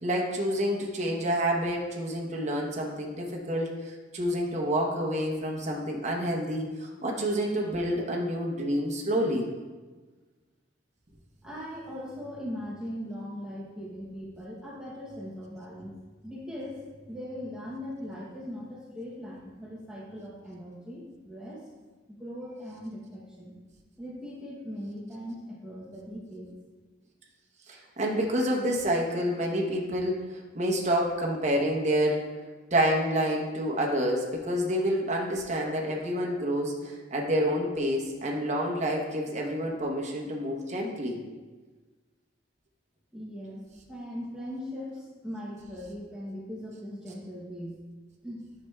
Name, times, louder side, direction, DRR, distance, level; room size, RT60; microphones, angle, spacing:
voice 1, 0.0-9.5 27.7-32.2 32.7-41.2, equal, 35° right, -1 dB, 0.9 m, -28 dB
voice 2, 11.4-16.0 16.2-21.6 22.1-23.5 24.0-26.5 43.1-47.8 48.2-48.4, equal, 5° right, -5 dB, 0.8 m, -40 dB
9.2 x 5.8 x 2.3 m, 1.3 s
head